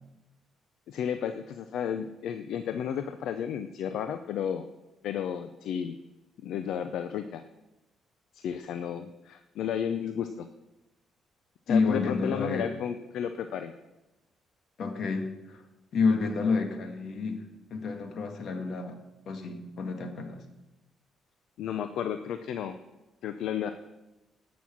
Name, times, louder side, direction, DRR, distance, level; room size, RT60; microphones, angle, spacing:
voice 1, 0.9-4.7 5.0-6.0 6.4-7.4 8.3-10.5 11.7-13.7 21.6-22.8 23.2-23.7, left 8 dB, 80° left, 9 dB, 0.6 m, -33 dB
voice 2, 11.7-12.7 14.8-15.6 15.9-17.4 17.7-19.0 19.2-20.4, left 4 dB, 60° left, 6 dB, 1.8 m, -29 dB
17.0 x 6.2 x 6.1 m, 1.0 s
cardioid pair, 90°, 0 cm